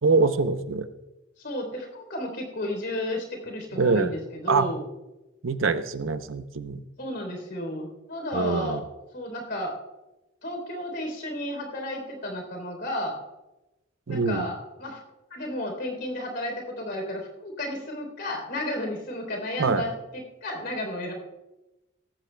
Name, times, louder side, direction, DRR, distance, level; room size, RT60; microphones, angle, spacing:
voice 1, 0.0-0.9 3.7-4.1 4.5-4.7 5.4-6.8 8.3-8.8 14.1-14.5 19.6-19.8, right 4 dB, 90° right, 11 dB, 0.7 m, -24 dB
voice 2, 1.4-4.8 7.0-8.8 9.1-9.7 10.4-13.1 14.1-15.0 15.3-21.1, left 1 dB, 55° left, 3 dB, 3.6 m, -32 dB
18.0 x 14.5 x 2.3 m, 0.99 s
head